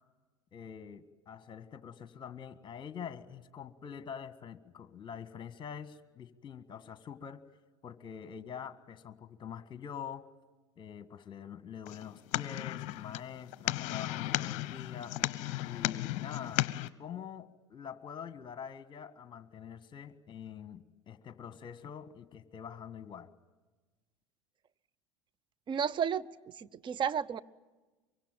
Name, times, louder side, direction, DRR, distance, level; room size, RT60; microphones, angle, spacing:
voice 1, 0.5-7.4 7.8-10.3 10.8-15.2 15.7-16.6 17.0-23.3, left 8 dB, 30° left, 13 dB, 1.7 m, -45 dB
sound 1, 11.9-16.9, left 15 dB, 50° left, 0.8 m, -35 dB
voice 2, 25.7-26.3 26.5-27.4, right 7 dB, 30° right, 14 dB, 0.9 m, -32 dB
24.0 x 24.0 x 9.1 m, 1.2 s
figure-of-eight pair, 75°, 16 cm